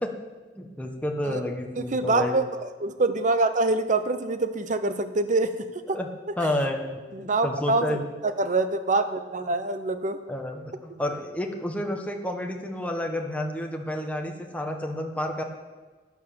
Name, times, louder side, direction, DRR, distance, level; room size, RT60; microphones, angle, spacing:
voice 1, 0.5-2.4 5.9-6.1 6.4-8.1 10.3-15.4, left 1 dB, 10° left, 2 dB, 1.4 m, -30 dB
voice 2, 1.8-5.5 5.9-6.0 7.1-10.2, right 2 dB, 45° right, 10 dB, 0.9 m, -25 dB
11.5 x 9.3 x 6.8 m, 1.3 s
head